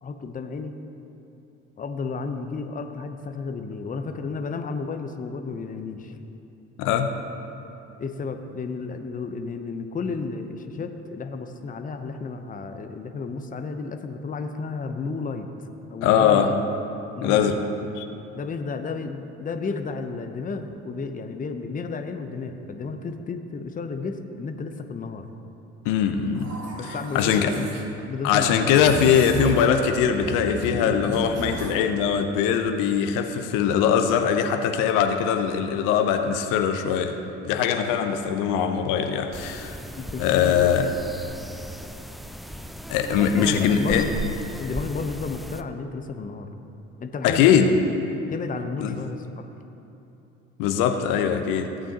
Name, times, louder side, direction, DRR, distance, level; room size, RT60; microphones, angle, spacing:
voice 1, 0.0-0.8 1.8-6.2 8.0-15.5 15.9-16.6 17.2-17.6 18.3-25.2 26.8-27.7 28.1-28.8 40.0-41.0 43.1-44.1 44.6-46.5 47.0-47.7 48.3-49.5 51.5-51.7, left 4 dB, 25° left, 6 dB, 0.8 m, -32 dB
voice 2, 6.8-7.1 16.0-16.5 17.2-17.6 18.0-18.1 25.8-26.5 26.8-27.5 28.2-37.1 37.4-39.8 40.2-40.9 42.9-44.1 47.2-47.8 48.8-49.0 50.6-51.7, left 8 dB, 60° left, 6 dB, 0.8 m, -21 dB
sound 1, 26.3-27.8 28.7-29.8 30.1-31.8, right 2 dB, 45° right, 1.7 m, -33 dB
sound 2, 39.3-45.6, equal, ahead, 0.3 m, -36 dB
17.0 x 8.7 x 2.9 m, 2.9 s
hypercardioid pair, 60°, 35 cm